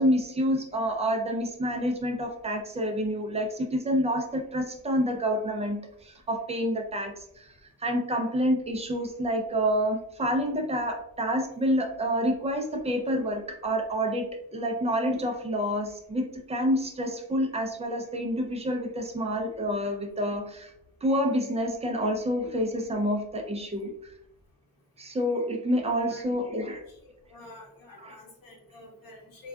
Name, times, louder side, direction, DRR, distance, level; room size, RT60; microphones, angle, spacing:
voice 1, 0.0-7.5 7.8-20.7 21.0-23.9 25.0-26.8 28.0-28.2, equal, 15° right, 3 dB, 0.4 m, -28 dB
voice 2, 27.3-29.5, left 2 dB, 60° left, -1 dB, 1.0 m, -48 dB
3.6 x 2.3 x 2.2 m, 0.78 s
wide cardioid pair, 135°, 39 cm